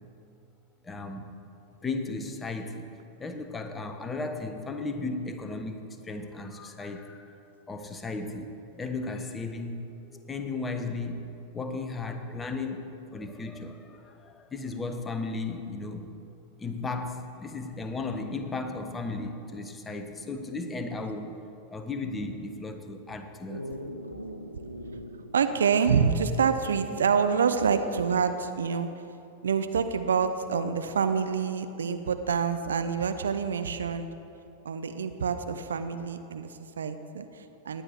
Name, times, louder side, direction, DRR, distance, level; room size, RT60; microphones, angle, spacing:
voice 1, 0.8-1.3 1.8-2.9 3.2-7.4 7.7-11.3 11.5-16.1 16.6-21.4 21.7-23.7, left 3 dB, 15° left, 6 dB, 1.1 m, -35 dB
Dog, 23.5-26.2 26.5-26.6 27.7-28.3 30.4-30.5, equal, 90° left, 0.8 m, -41 dB
voice 2, 25.3-28.9 29.4-34.1 34.6-37.8, right 6 dB, 65° right, 9 dB, 0.7 m, -27 dB
18.0 x 10.0 x 4.5 m, 2.7 s
figure-of-eight pair, 90°, 0 cm